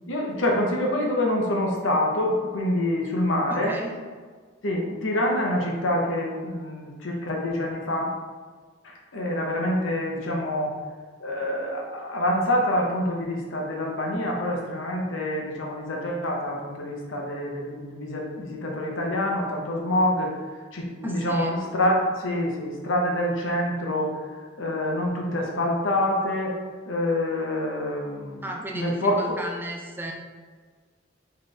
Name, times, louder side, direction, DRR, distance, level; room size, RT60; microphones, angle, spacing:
voice 1, 0.1-3.8 4.6-8.1 8.8-10.7 11.2-20.3 20.7-24.2 24.6-26.6 26.9-29.4, left 1 dB, 80° left, -1 dB, 0.9 m, -26 dB
voice 2, 3.5-4.0 21.0-21.5 28.4-30.1, right 1 dB, 10° right, 1 dB, 0.4 m, -34 dB
4.2 x 3.2 x 3.2 m, 1.5 s
head